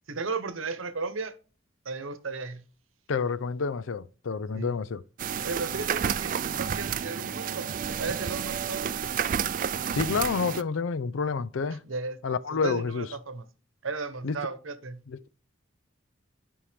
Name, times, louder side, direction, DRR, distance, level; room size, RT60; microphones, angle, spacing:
voice 1, 0.1-1.3 1.8-2.6 4.5-4.8 5.4-7.7 8.0-8.9 11.8-13.4 13.8-15.0, right 4 dB, 80° right, 1.0 m, -35 dB
voice 2, 3.1-5.0 9.9-11.8 12.2-13.1 14.2-14.4 15.1-15.3, left 5 dB, 75° left, 0.5 m, -29 dB
sound 1, 5.2-10.6, right 8 dB, 40° right, 0.3 m, -30 dB
11.5 x 5.5 x 3.4 m
head